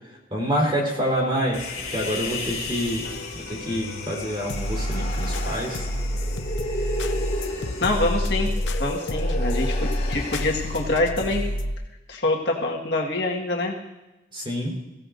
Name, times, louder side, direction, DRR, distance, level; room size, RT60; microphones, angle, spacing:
voice 1, 0.3-3.1 3.5-5.9 14.3-14.7, equal, 25° right, -2 dB, 4.0 m, -27 dB
Human voice, 1.5-10.9, left 2 dB, 35° left, 5.5 m, -33 dB
sound 1, 2.0-2.5 2.9-11.7, left 1 dB, 80° left, 0.8 m, -29 dB
voice 2, 7.8-11.4 12.1-13.8, left 2 dB, 60° left, -1 dB, 1.7 m, -25 dB
22.5 x 16.0 x 2.6 m, 1.0 s
head